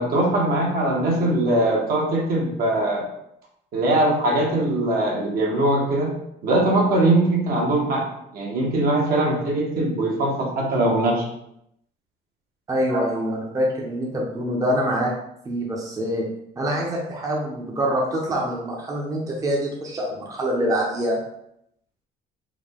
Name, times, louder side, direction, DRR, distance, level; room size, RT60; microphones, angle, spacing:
voice 1, 0.0-3.0 3.7-6.1 6.4-8.1 8.3-11.2 12.9-13.0, right 1 dB, 65° right, -2 dB, 1.1 m, -21 dB
voice 2, 12.7-15.1 15.4-16.2 16.6-21.2, equal, 20° right, -2 dB, 0.6 m, -25 dB
3.6 x 2.2 x 3.5 m, 0.76 s
cardioid pair, 110°, 17 cm